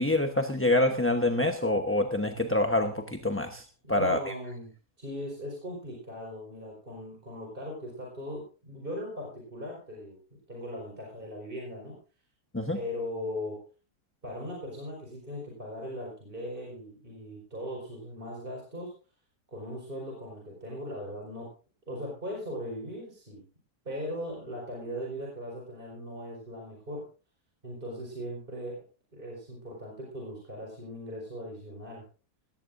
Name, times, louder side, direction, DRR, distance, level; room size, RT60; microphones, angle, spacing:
voice 1, 0.0-4.2 12.5-12.8, left 1 dB, 10° left, 4 dB, 0.7 m, -26 dB
voice 2, 3.8-4.7 5.0-10.2 10.5-11.9 12.7-13.6 14.2-18.9 19.5-21.5 21.9-23.4 23.8-27.0 27.6-28.8 29.1-32.0, equal, 30° right, -1 dB, 5.0 m, -39 dB
18.5 x 16.0 x 2.6 m, 0.34 s
omnidirectional pair, 1.8 m